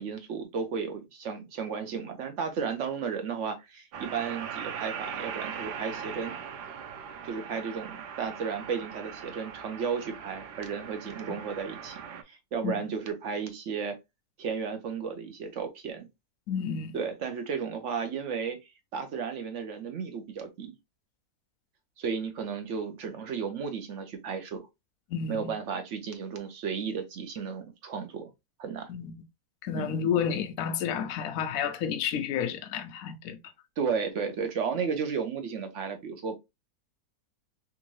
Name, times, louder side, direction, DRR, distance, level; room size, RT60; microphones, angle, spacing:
voice 1, 0.0-6.4 7.2-14.0 14.4-16.1 16.9-18.6 18.9-20.7 22.0-24.7 25.3-28.3 28.6-28.9 29.7-29.9 33.8-36.4, right 6 dB, 60° right, 0.8 m, -34 dB
sound 1, 3.9-12.2, right 7 dB, 90° right, 1.2 m, -40 dB
voice 2, 16.5-16.9 25.1-25.5 28.9-29.1 29.6-33.4, left 7 dB, 70° left, 0.9 m, -30 dB
3.5 x 2.6 x 3.0 m
omnidirectional pair, 1.7 m